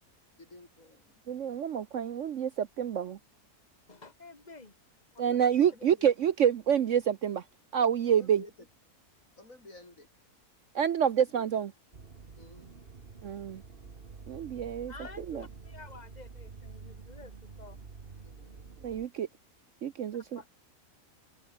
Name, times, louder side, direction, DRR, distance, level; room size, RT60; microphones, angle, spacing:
voice 1, 0.3-1.2 5.7-6.1 8.1-8.7 9.4-10.1 11.3-11.4 12.4-12.9 18.2-18.8, left 2 dB, 55° left, 6.7 m, -52 dB
voice 2, 1.3-3.2 5.2-7.4 7.7-8.4 10.7-11.7 13.2-13.6 14.3-14.9 15.3-15.4 18.8-19.3 19.8-20.4, right 8 dB, 60° right, 1.0 m, -27 dB
voice 3, 3.9-4.7 5.1-5.4 14.9-17.8 20.3-20.5, left 3 dB, 25° left, 3.2 m, -50 dB
sound 1, 11.9-19.1, right 4 dB, 35° right, 1.7 m, -48 dB
omnidirectional pair, 1.7 m